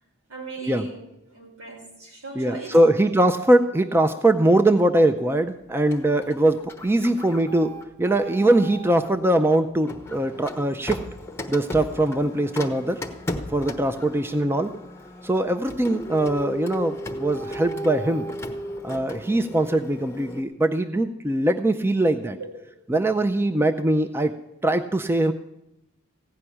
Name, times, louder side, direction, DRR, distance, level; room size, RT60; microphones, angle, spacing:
voice 1, 0.3-3.1 22.4-22.5, right 3 dB, 75° right, -2 dB, 5.1 m, -38 dB
voice 2, 2.4-7.7 8.0-11.0 11.5-13.0 13.5-14.7 15.2-18.2 18.8-22.4 22.9-24.3 24.6-25.3, right 1 dB, 10° right, 8 dB, 0.4 m, -21 dB
Printer, 5.9-9.2 9.9-20.4, left 1 dB, 10° left, 0.9 m, -36 dB
15.5 x 5.8 x 9.9 m, 0.88 s
head